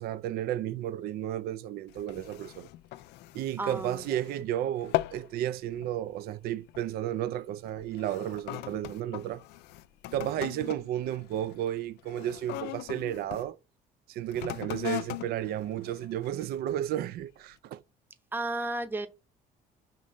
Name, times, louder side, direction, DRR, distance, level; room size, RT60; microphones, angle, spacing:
voice 1, 0.0-2.7 3.3-9.4 10.1-13.6 14.1-17.8, right 11 dB, 65° right, 0.4 m, -33 dB
sound 1, 1.9-4.5 4.8-5.3 5.7-6.0 6.7-6.9 7.6-13.5 14.2-16.6 17.2-17.3, left 17 dB, 80° left, 0.4 m, -39 dB
voice 2, 3.6-4.2 18.3-19.1, right 2 dB, 10° right, 0.7 m, -33 dB
5.1 x 3.7 x 5.7 m
cardioid pair, 110°, 17 cm